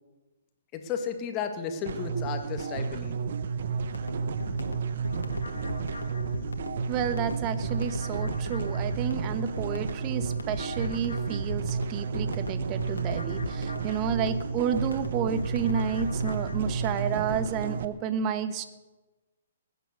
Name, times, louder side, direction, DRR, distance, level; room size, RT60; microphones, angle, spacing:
voice 1, 0.7-3.2, left 6 dB, 30° left, 6 dB, 2.0 m, -33 dB
sound 1, 1.9-17.9, right 6 dB, 60° right, 1.0 m, -32 dB
sound 2, 3.8-17.4, left 2 dB, 85° left, 2.0 m, -38 dB
voice 2, 6.9-18.6, right 7 dB, 30° right, 11 dB, 1.3 m, -31 dB
20.0 x 9.3 x 6.6 m, 1.2 s
hypercardioid pair, 130°, 0 cm